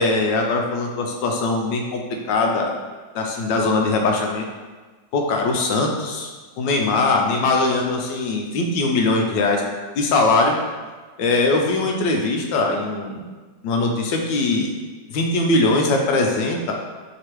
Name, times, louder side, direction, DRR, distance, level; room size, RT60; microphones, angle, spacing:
voice 1, 0.0-2.0 2.3-2.7 3.1-4.4 5.1-6.3 6.6-9.6 10.0-10.6 11.2-13.2 13.6-14.7 15.1-16.7, left 3 dB, 85° left, 1 dB, 1.3 m, -21 dB
4.8 x 3.3 x 3.0 m, 1.3 s
omnidirectional pair, 2.0 m